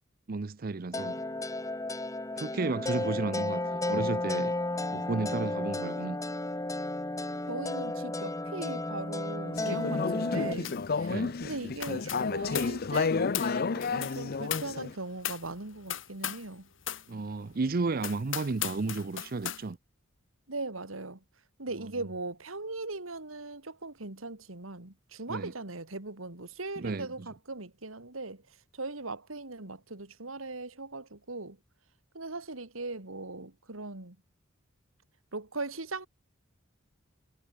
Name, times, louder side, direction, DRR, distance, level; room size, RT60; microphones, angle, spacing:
voice 1, 0.3-1.2 2.3-4.5 4.9-6.2 11.1-11.4 17.1-19.8 21.8-21.9 25.3-25.5 26.8-27.3, right 3 dB, 45° right, 0.6 m, -33 dB
sound 1, 0.9-10.5, left 2 dB, 15° left, 1.3 m, -33 dB
voice 2, 7.5-16.7 20.5-21.2 21.6-28.4 28.7-31.6 32.1-34.2 35.3-36.1, right 2 dB, 90° right, 2.9 m, -39 dB
Conversation / Chatter, 9.5-14.9, left 4 dB, 50° left, 0.6 m, -31 dB
sound 2, 10.6-10.9 11.2-16.5 16.8-17.1 17.5-17.6 18.0-19.6, left 10 dB, 65° left, 4.1 m, -38 dB
head